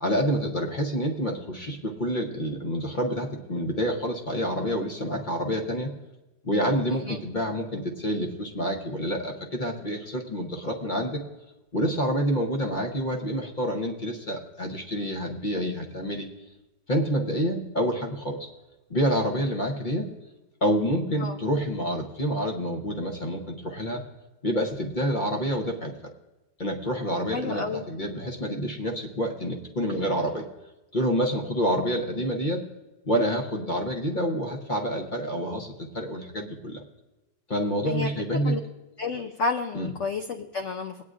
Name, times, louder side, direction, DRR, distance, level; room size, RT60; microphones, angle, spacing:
voice 1, 0.0-5.9 6.4-11.2 11.7-16.3 16.9-18.5 18.9-20.1 20.6-24.0 24.4-25.9 26.6-30.5 30.9-32.6 33.0-36.8 37.5-38.6 39.7-39.9, equal, 40° left, 2 dB, 0.7 m, -28 dB
voice 2, 27.3-27.9 37.9-38.6 39.0-41.0, left 4 dB, 90° left, 5 dB, 0.6 m, -31 dB
20.5 x 9.2 x 2.5 m, 1.0 s
omnidirectional pair, 2.0 m